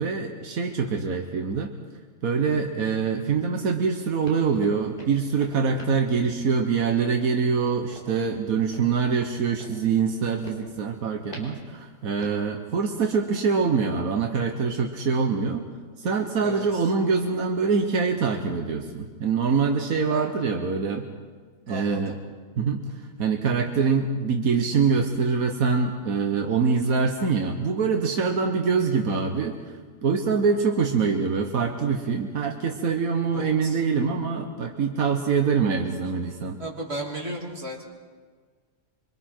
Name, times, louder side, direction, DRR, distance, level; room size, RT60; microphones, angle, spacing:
voice 1, 0.0-1.7 2.2-15.6 16.0-21.1 21.7-22.1 22.6-29.7 30.0-36.6, right 5 dB, 85° right, 3 dB, 1.6 m, -24 dB
voice 2, 2.3-2.7 16.4-16.8 20.1-20.3 21.7-22.2 33.3-33.8 36.6-37.8, right 1 dB, 45° right, -2 dB, 3.2 m, -35 dB
sound 1, 3.4-13.3, equal, 35° left, 4.1 m, -47 dB
26.0 x 24.5 x 4.5 m, 1.5 s
omnidirectional pair, 1.5 m